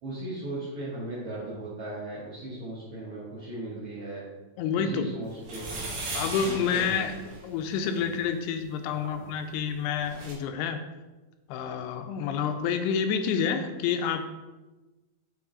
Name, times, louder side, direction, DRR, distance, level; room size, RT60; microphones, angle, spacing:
voice 1, 0.0-4.2 4.7-5.8 6.4-7.1 7.9-8.2 8.9-9.2, right 1 dB, 70° right, -9 dB, 1.3 m, -37 dB
voice 2, 4.6-5.1 6.1-7.1 7.4-10.8 11.5-14.2, left 7 dB, 85° left, 6 dB, 2.5 m, -28 dB
sound 1, 5.4-8.0 9.7-9.8 9.9-10.3, right 2 dB, 55° right, 3.0 m, -37 dB
8.5 x 3.4 x 3.8 m, 1.1 s
omnidirectional pair, 4.7 m